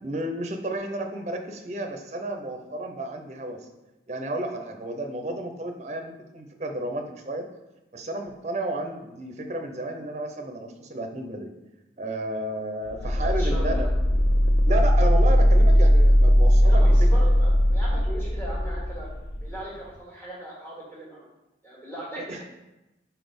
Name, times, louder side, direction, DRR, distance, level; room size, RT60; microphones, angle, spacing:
voice 1, 0.0-3.7 4.1-7.5 7.9-11.5 12.0-13.9 14.7-17.2 22.3-22.4, right 1 dB, 40° right, 4 dB, 0.6 m, -32 dB
sound 1, 12.9-19.5, equal, 50° left, 0.4 m, -19 dB
voice 2, 13.0-13.9 14.9-15.0 16.6-19.1 19.4-21.2 21.6-22.4, right 1 dB, 10° left, -6 dB, 1.6 m, -39 dB
4.4 x 4.1 x 5.1 m, 0.98 s
head